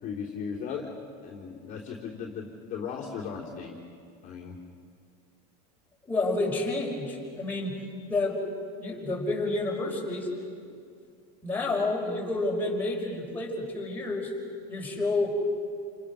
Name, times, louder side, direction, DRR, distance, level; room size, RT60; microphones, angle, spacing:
voice 1, 0.0-3.7 4.2-4.6, left 6 dB, 40° left, -3 dB, 3.4 m, -37 dB
voice 2, 6.1-7.7 8.1-8.5 8.8-10.3 11.4-14.3 14.7-15.3, left 2 dB, 10° left, -3 dB, 5.5 m, -29 dB
29.5 x 29.0 x 6.4 m, 2.3 s
supercardioid pair, 155°, 21 cm